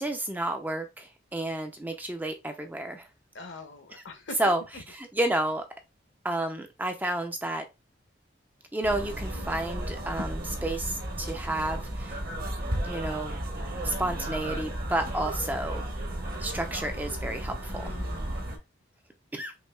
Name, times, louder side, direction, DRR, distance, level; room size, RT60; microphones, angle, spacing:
voice 1, 0.0-3.1 4.4-4.6 5.0-5.6 6.2-7.7 8.7-12.2 12.8-13.4 13.8-15.8 16.4-17.9 19.3-19.5, right 1 dB, 10° right, 0.4 m, -31 dB
voice 2, 3.3-4.5 17.7-18.6, left 3 dB, 70° left, 0.9 m, -42 dB
sound 1, 8.8-18.6, right 1 dB, 45° right, 0.9 m, -34 dB
5.3 x 2.7 x 2.2 m
head